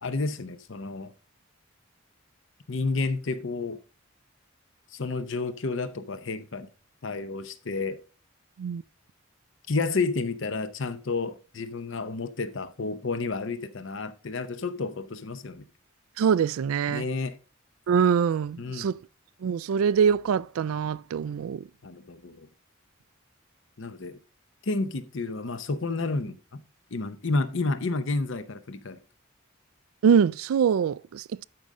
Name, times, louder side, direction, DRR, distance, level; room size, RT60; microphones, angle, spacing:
voice 1, 0.0-1.1 2.7-3.8 4.9-6.7 7.0-8.0 9.7-15.6 16.9-17.4 18.6-18.9 21.8-22.5 23.8-24.2 24.6-26.6 26.9-29.0, left 3 dB, 60° left, 0.7 m, -30 dB
voice 2, 16.2-17.0 17.9-19.0 19.4-21.6 30.0-31.4, right 7 dB, 85° right, 0.3 m, -24 dB
12.5 x 5.3 x 3.6 m
head